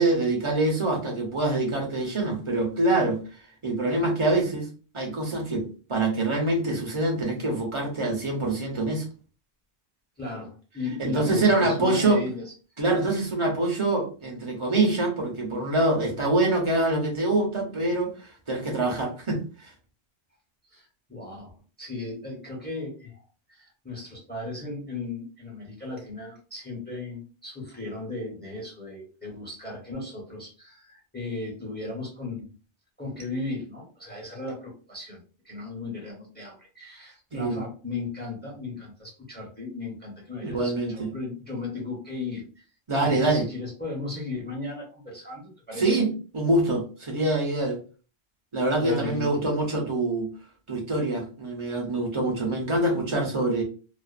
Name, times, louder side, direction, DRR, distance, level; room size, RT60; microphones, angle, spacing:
voice 1, 0.0-3.2 3.6-4.7 4.9-9.0 11.0-12.2 12.8-19.7 37.3-37.6 40.4-41.1 42.9-43.5 45.8-47.8 48.5-50.3 50.7-53.6, right 2 dB, 30° right, 0 dB, 0.7 m, -25 dB
voice 2, 10.2-12.4 20.7-21.5 21.8-32.5 33.0-35.2 35.4-42.4 43.0-46.0 48.8-49.5, left 3 dB, 10° left, -3 dB, 0.8 m, -36 dB
2.5 x 2.4 x 2.4 m, 0.36 s
omnidirectional pair, 1.1 m